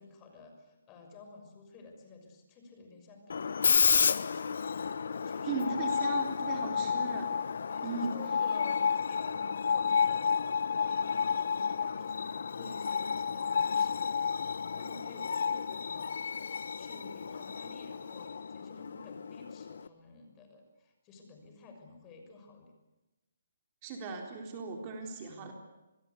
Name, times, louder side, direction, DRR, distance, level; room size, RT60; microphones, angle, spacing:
voice 1, 0.0-4.5 5.1-5.8 6.6-7.1 7.7-22.7, left 3 dB, 20° left, 3 dB, 6.2 m, -52 dB
Screech, 3.3-19.9, left 6 dB, 65° left, 1.1 m, -31 dB
voice 2, 5.4-7.3 7.8-8.1 23.8-25.5, right 4 dB, 30° right, 3 dB, 3.9 m, -37 dB
26.5 x 21.0 x 8.4 m, 1.0 s
hypercardioid pair, 150°, 0 cm